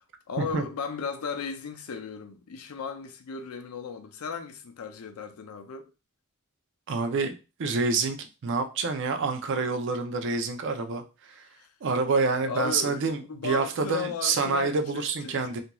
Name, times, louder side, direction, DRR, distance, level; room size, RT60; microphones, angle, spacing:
voice 1, 0.0-5.9 11.5-11.7 12.4-15.4, left 5 dB, 90° left, 0.5 m, -36 dB
voice 2, 6.9-7.3 7.6-8.2 8.4-11.5 11.8-15.6, right 4 dB, 60° right, 0.4 m, -27 dB
2.9 x 2.5 x 2.2 m
head